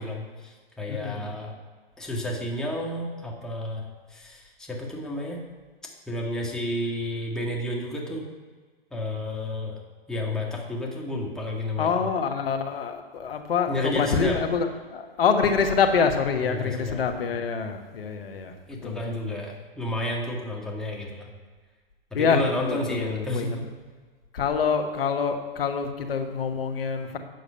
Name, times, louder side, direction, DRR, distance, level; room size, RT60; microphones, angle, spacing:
voice 1, 0.0-1.5 2.0-5.4 6.1-8.2 8.9-9.8 10.1-12.1 13.7-14.4 16.5-17.4 18.7-21.3 22.1-23.6, left 1 dB, ahead, -2 dB, 1.6 m, -31 dB
voice 2, 0.9-1.3 11.8-18.5 18.8-19.0 19.2-19.3 22.1-22.4 22.7-23.5 24.3-27.2, left 6 dB, 70° left, 7 dB, 1.4 m, -26 dB
9.2 x 6.6 x 5.6 m, 1.4 s
hypercardioid pair, 120°, 30 cm